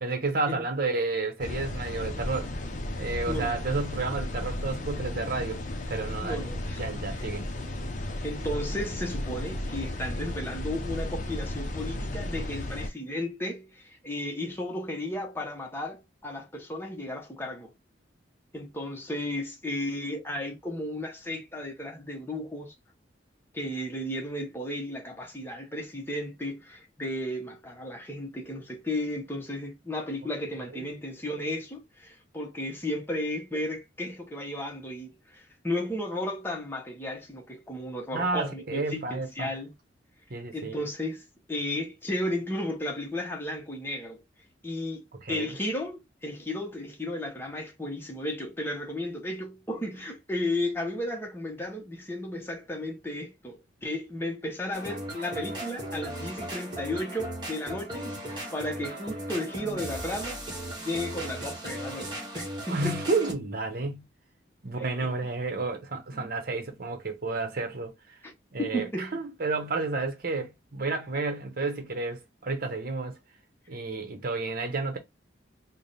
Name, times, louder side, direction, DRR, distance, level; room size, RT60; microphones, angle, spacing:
voice 1, 0.0-2.5 3.0-6.4 6.8-7.5 30.7-30.9 38.1-39.5 40.3-40.9 45.1-45.5 62.7-64.0 64.6-67.9 68.5-73.2 73.7-75.0, right 3 dB, 50° right, 0.9 m, -31 dB
sound 1, 1.4-12.9, left 1 dB, 40° left, 0.6 m, -34 dB
voice 2, 3.3-3.6 6.2-7.3 8.2-17.7 18.5-22.7 23.5-39.7 40.5-44.2 44.6-60.4 60.8-63.0 64.8-64.9 66.1-66.3 68.2-68.3 68.6-69.2, left 1 dB, 10° left, 0.8 m, -34 dB
sound 2, 54.7-63.3, right 1 dB, 25° right, 1.1 m, -37 dB
3.4 x 2.2 x 4.1 m
head